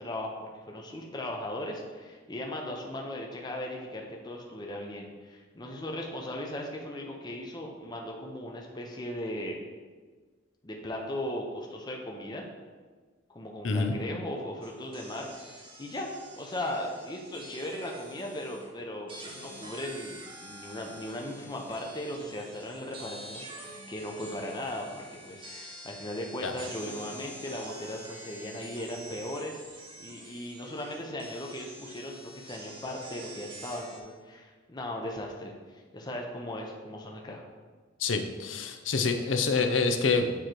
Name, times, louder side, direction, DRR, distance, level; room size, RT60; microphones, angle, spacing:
voice 1, 0.0-9.6 10.6-12.4 13.3-15.3 15.8-16.1 16.4-29.6 30.0-37.4, left 1 dB, 20° left, 0 dB, 0.6 m, -37 dB
voice 2, 13.6-13.9 26.4-26.5 38.0-40.3, left 4 dB, 75° left, 7 dB, 0.6 m, -27 dB
sound 1, 14.6-18.7 19.1-34.0, right 1 dB, 25° right, 1.1 m, -47 dB
8.9 x 3.1 x 4.4 m, 1.4 s
head